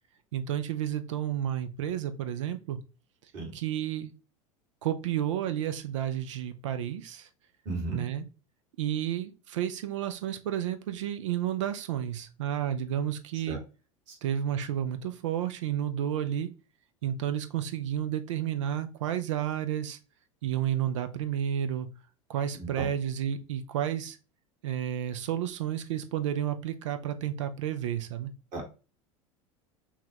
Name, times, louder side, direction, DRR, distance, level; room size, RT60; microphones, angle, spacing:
voice 1, 0.3-2.8 3.5-4.1 4.8-7.3 7.9-8.2 8.8-13.6 14.2-16.5 17.0-20.0 20.4-21.9 22.3-24.2 24.6-28.3, right 10 dB, 65° right, 10 dB, 0.6 m, -31 dB
voice 2, 7.7-8.0 13.5-13.6 14.1-14.2 22.6-22.9 28.5-28.7, right 3 dB, 50° right, 0 dB, 2.0 m, -35 dB
5.6 x 2.3 x 2.9 m, 0.32 s
figure-of-eight pair, 80°, 17 cm